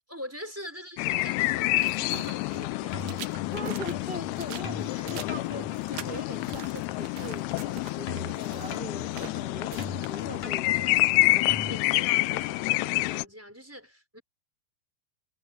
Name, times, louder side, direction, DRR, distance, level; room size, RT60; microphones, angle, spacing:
voice 1, 0.1-3.2 4.8-5.2 10.2-10.3 11.7-14.2, equal, 5° right, 5.0 m, -43 dB
sound 1, 1.0-13.3, left 21 dB, 80° left, 2.4 m, -28 dB
sound 2, 1.4-11.4, right 11 dB, 65° right, 2.9 m, -46 dB
sound 3, 2.5-7.6 7.9-11.9, left 4 dB, 45° left, 3.8 m, -42 dB
voice 2, 3.5-11.5, equal, 20° left, 1.9 m, -41 dB
omnidirectional pair, 4.7 m